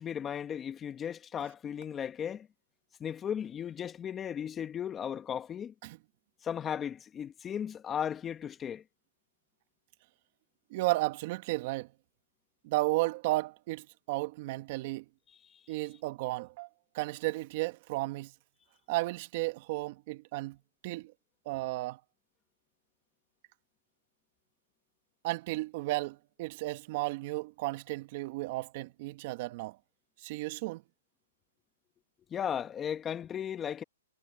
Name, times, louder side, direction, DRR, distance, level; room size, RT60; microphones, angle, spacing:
voice 1, 0.0-2.5 3.0-5.7 6.4-8.8 15.3-15.6 32.3-33.8, left 8 dB, 15° left, 1.9 m, -36 dB
voice 2, 10.7-11.9 12.6-15.0 15.7-16.7 16.9-18.3 18.9-20.6 20.8-21.1 21.4-22.0 25.2-29.8 30.2-30.8, right 20 dB, 40° right, 1.7 m, -33 dB
hypercardioid pair, 145°, 0 cm